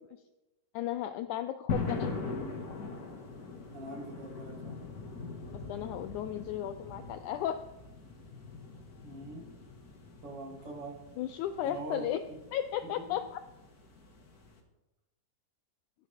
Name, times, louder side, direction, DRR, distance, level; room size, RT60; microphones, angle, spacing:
voice 1, 0.7-2.1 5.7-7.6 11.2-12.2 12.5-13.4, left 11 dB, 85° left, 10 dB, 1.7 m, -34 dB
sound 1, 1.7-14.6, left 3 dB, 40° left, 1.5 m, -42 dB
voice 2, 3.7-4.7 9.0-9.4 10.2-11.0 11.7-12.1 13.1-13.2, right 2 dB, 40° right, -1 dB, 3.7 m, -42 dB
23.0 x 11.0 x 3.6 m, 1.0 s
omnidirectional pair, 4.1 m